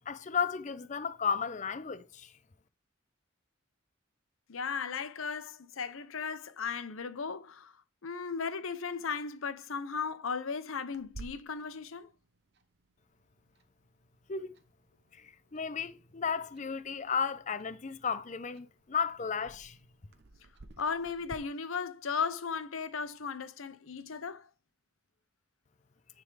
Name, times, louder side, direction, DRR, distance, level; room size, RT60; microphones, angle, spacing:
voice 1, 0.1-2.3 14.3-14.5 15.2-19.8, left 6 dB, 35° left, 0.5 m, -34 dB
voice 2, 4.5-7.8 8.0-12.1 20.8-24.5, left 5 dB, 85° left, 0.8 m, -36 dB
Clock, 10.9-21.4, right 2 dB, 55° right, 0.9 m, -55 dB
10.0 x 3.7 x 4.7 m
head